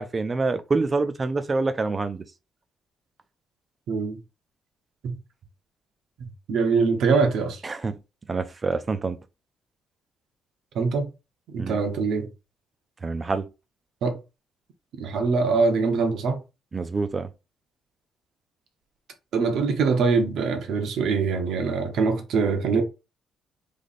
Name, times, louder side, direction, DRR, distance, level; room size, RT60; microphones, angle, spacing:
voice 1, 0.0-2.2 7.6-8.0 8.3-9.2 11.6-11.8 13.0-13.5 16.7-17.3, right 3 dB, 30° right, 0.5 m, -26 dB
voice 2, 3.9-4.2 5.0-5.2 6.2-7.6 10.7-11.1 11.5-12.3 14.0-14.2 15.0-16.4 19.3-22.8, right 4 dB, 75° right, 1.0 m, -23 dB
3.3 x 2.9 x 4.2 m
cardioid pair, 90°, 0 cm